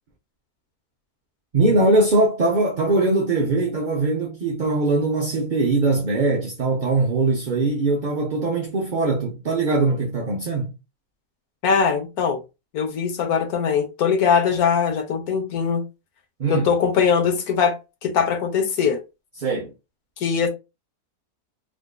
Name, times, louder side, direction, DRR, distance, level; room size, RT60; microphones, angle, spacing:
voice 1, 1.5-10.7 16.4-16.7 19.4-19.7, right 2 dB, 45° right, 0.7 m, -21 dB
voice 2, 11.6-12.4 12.7-15.8 16.5-17.8 18.0-19.0 20.2-20.5, left 6 dB, 90° left, 1.4 m, -21 dB
4.9 x 2.5 x 2.2 m
omnidirectional pair, 1.5 m